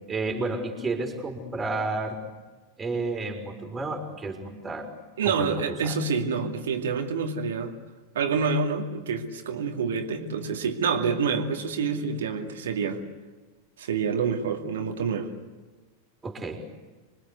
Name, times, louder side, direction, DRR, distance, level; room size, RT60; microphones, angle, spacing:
voice 1, 0.1-2.2 2.8-4.9 5.2-6.0 16.2-16.6, right 3 dB, 15° right, 3 dB, 4.4 m, -31 dB
voice 2, 5.2-7.7 8.1-13.0 13.8-15.3, right 5 dB, 60° right, 4 dB, 2.5 m, -27 dB
27.0 x 23.5 x 8.3 m, 1.3 s
figure-of-eight pair, 90°, 0 cm